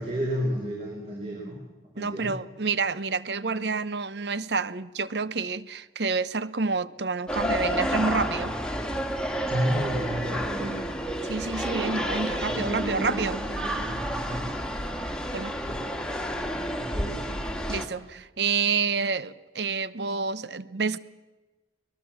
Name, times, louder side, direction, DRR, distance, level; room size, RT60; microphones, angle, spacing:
voice 1, 0.0-1.6 1.9-2.3 9.5-10.8 12.5-15.0 15.7-15.8 16.8-17.3, equal, 35° right, 4.2 m, -32 dB
voice 2, 2.0-8.5 11.3-13.4 15.3-15.5 17.7-21.0, right 4 dB, 75° right, 0.8 m, -28 dB
sound 1, 7.3-17.9, equal, 5° left, 1.8 m, -30 dB
23.5 x 20.5 x 7.3 m
head